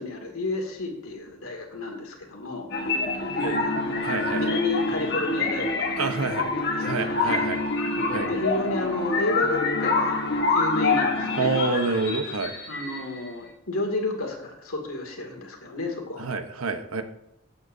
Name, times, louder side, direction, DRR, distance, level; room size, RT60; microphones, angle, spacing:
voice 1, 0.0-2.7 3.1-7.5 8.3-10.2 10.5-11.5 12.7-16.2, left 2 dB, 85° left, 2 dB, 2.5 m, -31 dB
sound 1, 2.7-13.3, left 3 dB, 55° left, 1.5 m, -26 dB
voice 2, 4.0-4.5 6.0-6.5 6.8-7.6 8.1-8.3 11.4-12.5 16.2-17.0, right 3 dB, 85° right, 7 dB, 1.1 m, -27 dB
15.5 x 8.6 x 2.8 m, 0.81 s
head